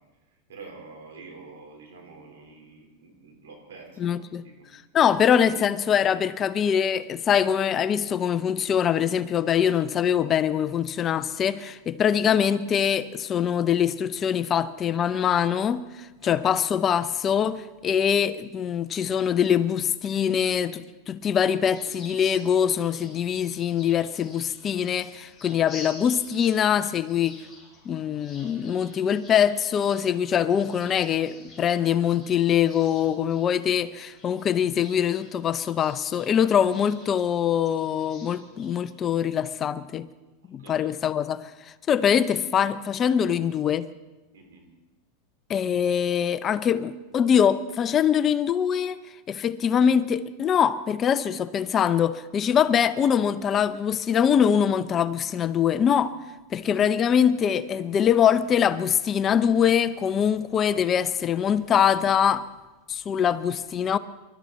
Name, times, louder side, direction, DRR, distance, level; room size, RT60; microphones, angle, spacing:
voice 1, 0.5-4.7 16.2-16.4 40.6-40.9 44.3-44.6, right 4 dB, 85° right, 4.1 m, -47 dB
voice 2, 4.0-4.4 4.9-27.4 27.9-40.1 40.5-43.9 45.5-49.0 49.3-56.1 56.5-62.5 62.9-64.0, left 8 dB, 30° left, 0.6 m, -23 dB
sound 1, 21.7-38.9, left 3 dB, 5° left, 5.5 m, -49 dB
23.0 x 12.5 x 4.2 m
supercardioid pair, 125°, 0 cm